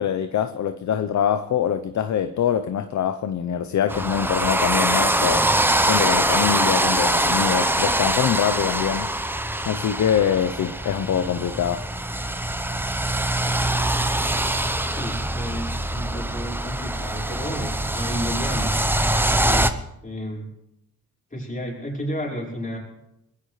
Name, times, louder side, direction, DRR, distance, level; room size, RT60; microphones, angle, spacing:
voice 1, 0.0-5.5 5.9-9.1 9.6-11.8, left 9 dB, 50° left, 9 dB, 0.8 m, -24 dB
sound 1, 3.9-19.7, right 1 dB, 5° right, 0.8 m, -23 dB
voice 2, 14.9-18.9 19.3-19.8 20.0-20.5 21.3-22.8, equal, 20° left, -2 dB, 5.0 m, -32 dB
21.0 x 15.0 x 3.3 m, 0.85 s
cardioid pair, 75°, 38 cm